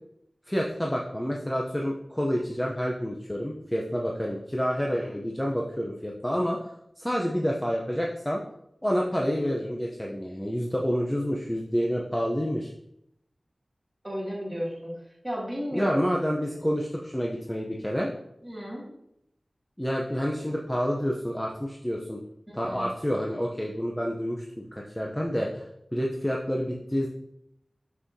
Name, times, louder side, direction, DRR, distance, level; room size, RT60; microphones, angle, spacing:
voice 1, 0.5-8.4 8.8-12.7 15.7-18.1 19.8-22.2 22.5-25.7 25.9-27.1, equal, 10° left, -1 dB, 0.7 m, -28 dB
voice 2, 14.0-14.9 15.2-16.1 16.5-16.6 18.4-18.9 22.5-22.9, equal, 10° right, -5 dB, 2.5 m, -34 dB
6.3 x 6.0 x 2.7 m, 0.78 s
wide cardioid pair, 80°, 0 cm